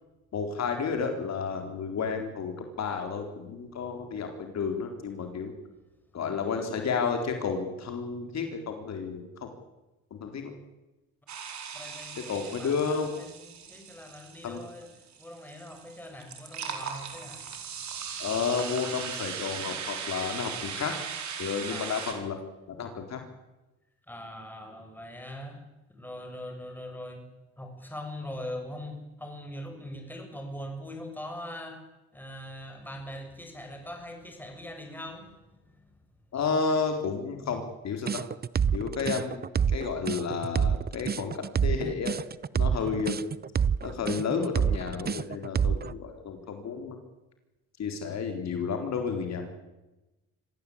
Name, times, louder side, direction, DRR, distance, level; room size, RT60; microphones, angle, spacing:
voice 1, 0.3-5.5 6.1-9.5 10.1-10.5 12.3-13.1 14.4-14.6 18.2-20.9 21.4-22.4 22.7-23.2 36.3-38.2 38.7-42.2 42.5-43.2 43.8-47.0 47.8-49.6, left 5 dB, 60° left, 4.2 m, -31 dB
sound 1, 11.3-22.1, right 7 dB, 70° right, 5.1 m, -39 dB
voice 2, 11.7-14.9 15.2-17.8 21.7-22.0 24.1-25.6 25.9-27.2 27.6-31.8 32.1-35.4 35.7-35.8 42.7-42.9, left 1 dB, 5° left, 6.9 m, -42 dB
sound 2, 38.1-45.9, right 7 dB, 30° right, 0.8 m, -27 dB
25.5 x 16.0 x 8.9 m
cardioid pair, 90°, 30 cm